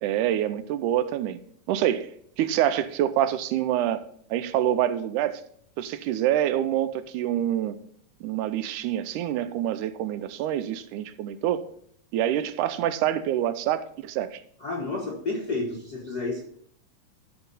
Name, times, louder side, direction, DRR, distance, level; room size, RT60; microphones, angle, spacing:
voice 1, 0.0-1.4 1.7-2.1 2.4-4.0 4.3-5.4 5.8-7.8 8.2-11.7 12.1-14.4, right 11 dB, 80° right, 2.0 m, -26 dB
voice 2, 14.6-16.4, left 3 dB, 55° left, 1.1 m, -30 dB
13.0 x 5.8 x 4.0 m
omnidirectional pair, 3.6 m